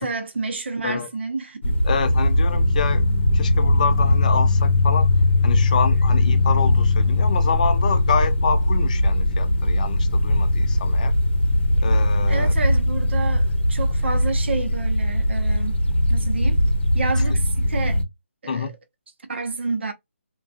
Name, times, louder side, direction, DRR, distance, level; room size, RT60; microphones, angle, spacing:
voice 1, 0.0-1.6 12.3-15.8 16.1-16.6 16.9-18.0 18.4-18.7 19.3-19.9, right 4 dB, 55° right, 0.7 m, -29 dB
sound 1, 1.6-18.0, left 1 dB, 60° left, 0.7 m, -20 dB
voice 2, 1.8-3.1 3.3-5.1 5.4-11.1 11.8-12.5 18.5-18.7, left 6 dB, 35° left, 0.4 m, -27 dB
2.3 x 2.3 x 2.4 m
figure-of-eight pair, 155°, 7 cm